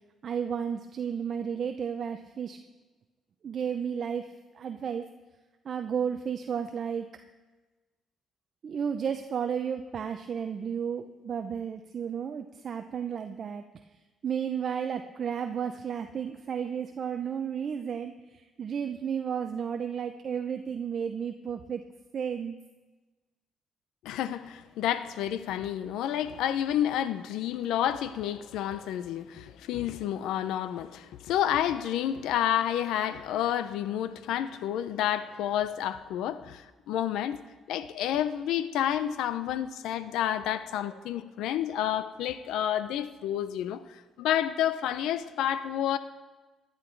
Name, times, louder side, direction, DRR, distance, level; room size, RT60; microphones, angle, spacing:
voice 1, 0.2-2.6 3.4-5.1 5.6-7.1 8.6-13.6 14.2-21.8 22.1-22.5, right 7 dB, 55° right, 0.6 m, -33 dB
voice 2, 24.0-37.4 37.7-43.8 44.2-46.0, left 11 dB, 85° left, 0.6 m, -30 dB
14.5 x 10.5 x 4.6 m
cardioid pair, 85°, 0 cm